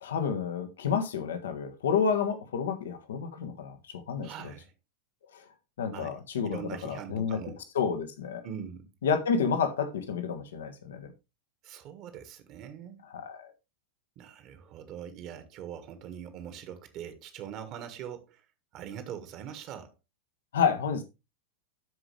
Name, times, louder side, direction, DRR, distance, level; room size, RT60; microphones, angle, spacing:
voice 1, 0.0-4.5 5.3-5.5 5.8-7.4 7.7-8.4 9.0-11.1 13.1-13.5 20.5-21.0, left 6 dB, 60° left, 1.4 m, -30 dB
voice 2, 4.2-4.7 5.9-6.2 6.4-7.6 8.4-8.9 11.6-13.0 14.1-18.4 18.7-19.9, right 9 dB, 40° right, 1.6 m, -42 dB
12.5 x 5.0 x 3.3 m
figure-of-eight pair, 90°, 0 cm